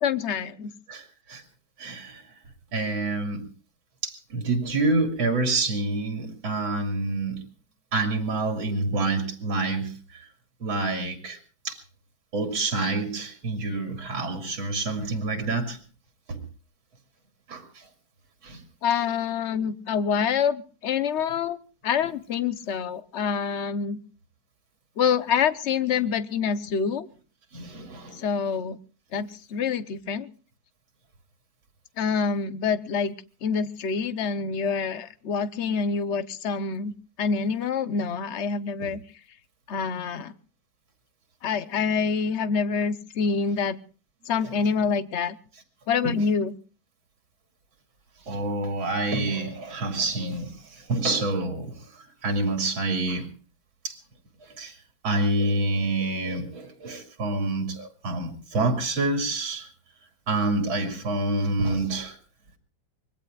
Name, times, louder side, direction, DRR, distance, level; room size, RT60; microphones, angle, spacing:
voice 1, 0.0-0.7 18.8-21.6 21.8-24.0 25.0-27.1 28.1-28.8 29.1-30.3 32.0-33.1 33.4-36.9 37.2-39.0 39.7-40.3 41.4-43.8 44.3-45.4 45.9-46.6, left 6 dB, 50° left, 13 dB, 0.8 m, -26 dB
voice 2, 0.9-1.4 1.8-2.2 2.7-3.5 4.0-7.4 7.9-10.3 10.6-11.4 11.6-11.8 12.3-15.8 16.3-16.4 17.5-17.9 18.4-18.6 27.5-28.2 46.0-46.2 48.3-53.3 53.8-54.0 54.4-54.8 55.0-59.7 60.3-62.2, right 2 dB, 90° right, 6 dB, 3.3 m, -27 dB
25.0 x 21.0 x 2.4 m, 0.37 s
omnidirectional pair, 2.1 m